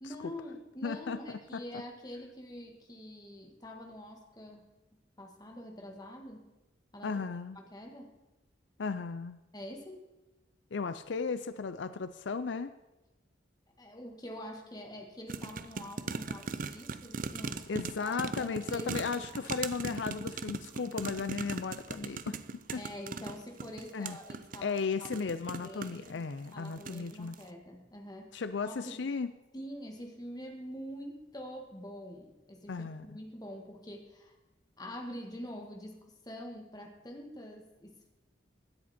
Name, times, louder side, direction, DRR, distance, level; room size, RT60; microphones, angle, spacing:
voice 1, 0.0-4.7 5.2-6.5 6.9-7.1 7.5-8.2 9.5-10.1 13.8-19.1 22.7-25.1 25.6-29.1 29.5-34.3 34.8-38.1, equal, 20° left, 2 dB, 1.7 m, -45 dB
voice 2, 0.8-1.6 7.0-7.6 8.8-9.4 10.7-12.7 17.7-22.4 22.7-22.8 23.9-24.2 24.6-27.4 28.3-29.3 32.7-33.1, left 5 dB, 80° left, 12 dB, 0.5 m, -35 dB
sound 1, 15.3-26.1 26.7-27.1 27.3-27.4, right 4 dB, 45° right, 0.5 m, -39 dB
16.5 x 10.0 x 4.3 m, 1.0 s
head